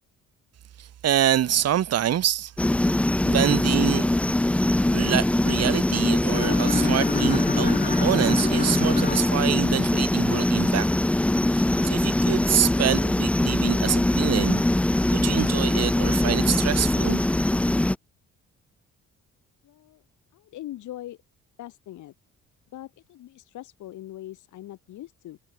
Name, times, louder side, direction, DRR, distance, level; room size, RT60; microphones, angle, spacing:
voice 1, 0.8-2.5 3.2-4.1 4.9-10.9 11.5-14.6 15.1-17.2, right 11 dB, 55° right, 1.1 m, -26 dB
sound 1, 2.6-18.0, left 1 dB, 5° left, 0.4 m, -22 dB
sound 2, 6.3-10.2, left 5 dB, 30° left, 1.3 m, -31 dB
sound 3, 11.6-13.2 13.5-13.8, right 3 dB, 25° right, 4.0 m, -50 dB
voice 2, 19.6-20.0 20.3-21.2 21.6-22.1 22.7-25.4, left 14 dB, 75° left, 1.5 m, -41 dB
cardioid pair, 90°, 30 cm